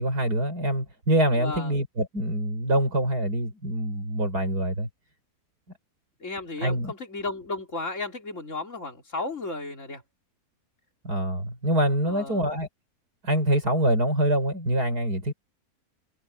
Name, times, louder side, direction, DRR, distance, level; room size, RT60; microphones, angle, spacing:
voice 1, 0.0-4.9 6.6-6.9 11.0-12.7 13.2-15.3, right 1 dB, 80° right, 7.0 m, -25 dB
voice 2, 1.4-1.8 6.2-10.0 12.1-12.4, left 3 dB, 50° left, 4.1 m, -34 dB
omnidirectional pair, 1.7 m